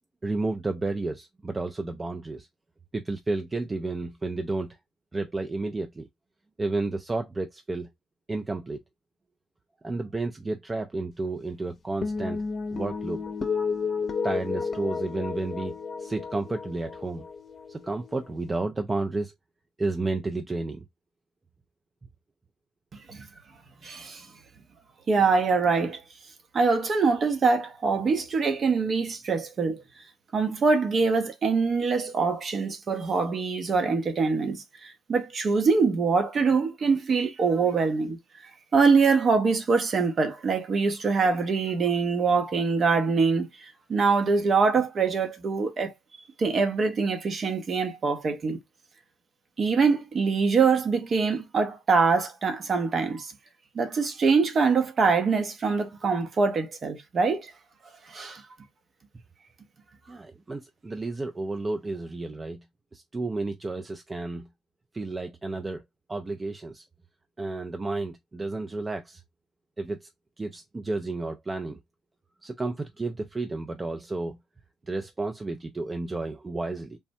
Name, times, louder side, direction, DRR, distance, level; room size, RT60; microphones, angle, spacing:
voice 1, 0.2-2.5 2.9-4.7 5.1-6.1 6.6-7.9 8.3-8.8 9.8-12.4 12.7-13.2 14.2-15.7 16.0-17.2 17.7-19.3 19.8-20.8 60.1-62.6 62.9-64.5 64.9-65.8 66.1-66.8 67.4-69.2 69.8-70.1 70.4-71.8 72.4-74.4 74.9-77.0, right 3 dB, 25° right, 0.4 m, -31 dB
sound 1, 12.0-18.6, left 5 dB, 45° left, 0.7 m, -32 dB
voice 2, 23.8-24.3 25.1-26.0 26.5-29.8 30.3-38.2 38.7-45.9 46.4-48.6 49.6-53.3 53.7-57.5 58.1-58.4, right 4 dB, 50° right, 0.8 m, -24 dB
3.4 x 2.0 x 2.6 m
hypercardioid pair, 55°, 0 cm